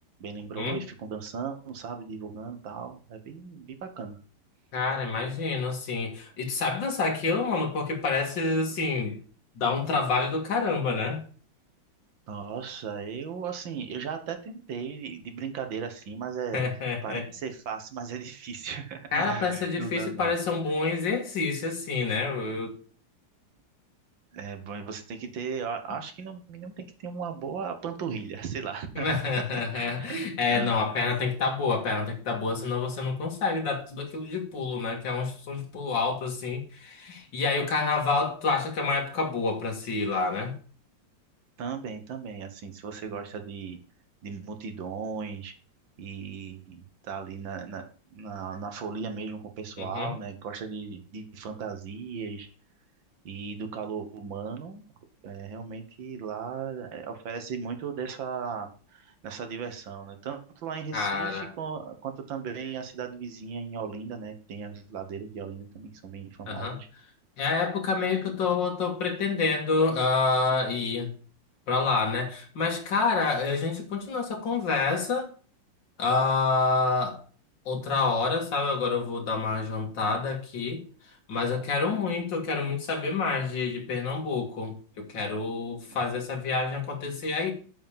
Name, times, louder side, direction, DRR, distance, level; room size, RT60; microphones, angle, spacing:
voice 1, 0.2-4.2 12.3-16.6 17.0-20.3 24.3-29.2 29.5-30.2 30.5-30.9 41.6-43.8 44.2-45.5 46.0-52.5 53.3-54.8 55.2-66.9 85.9-86.0, right 6 dB, 80° right, 2.0 m, -37 dB
voice 2, 4.7-9.2 9.6-11.2 16.5-17.2 19.1-22.7 29.0-40.5 49.8-50.1 60.9-61.5 66.5-66.8 67.4-71.1 71.7-75.3 76.0-77.2 77.7-80.8 81.3-87.5, left 4 dB, 70° left, 2.7 m, -28 dB
8.0 x 5.0 x 7.3 m
omnidirectional pair, 2.1 m